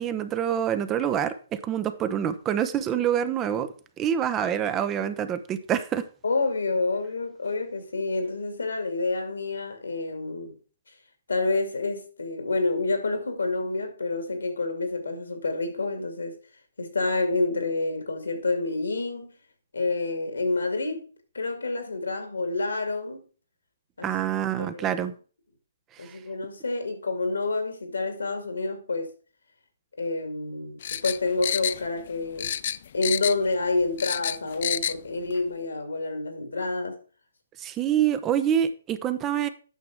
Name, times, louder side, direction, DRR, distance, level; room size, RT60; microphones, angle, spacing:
voice 1, 0.0-6.0 24.0-25.1 37.6-39.5, right 9 dB, 20° right, 0.7 m, -26 dB
voice 2, 6.2-10.6 11.3-16.4 16.8-19.3 19.7-21.1 21.3-23.2 24.0-24.1 24.6-25.0 26.0-29.1 30.0-32.6 32.9-37.0, left 3 dB, 80° left, 2.4 m, -28 dB
sound 1, 30.8-32.1 32.4-33.5 33.8-35.0 35.3-35.4, left 9 dB, 50° left, 0.4 m, -29 dB
9.1 x 6.1 x 4.7 m
figure-of-eight pair, 135°, 0 cm